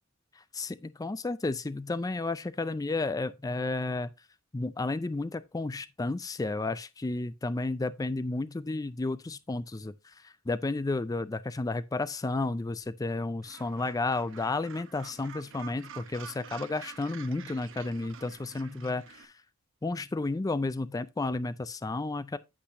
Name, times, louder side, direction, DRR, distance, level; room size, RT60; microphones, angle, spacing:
voice 1, 0.5-4.1 4.5-9.9 10.2-19.3 19.8-22.4, left 2 dB, 15° left, 0.4 m, -32 dB
Gull seagull, 13.4-19.2, right 7 dB, 60° right, 1.0 m, -48 dB
8.6 x 8.1 x 2.7 m
head